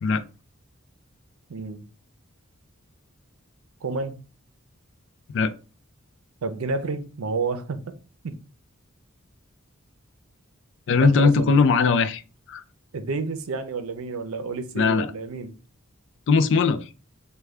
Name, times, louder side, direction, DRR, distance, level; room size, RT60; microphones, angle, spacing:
voice 1, 1.5-1.9 3.8-4.2 6.4-7.9 8.2-8.4 11.0-11.7 12.9-15.5, right 4 dB, 90° right, 0.5 m, -30 dB
voice 2, 10.9-12.2 12.5-12.6 14.7-15.1 16.3-16.9, left 4 dB, 60° left, 0.4 m, -19 dB
3.3 x 2.2 x 3.5 m
head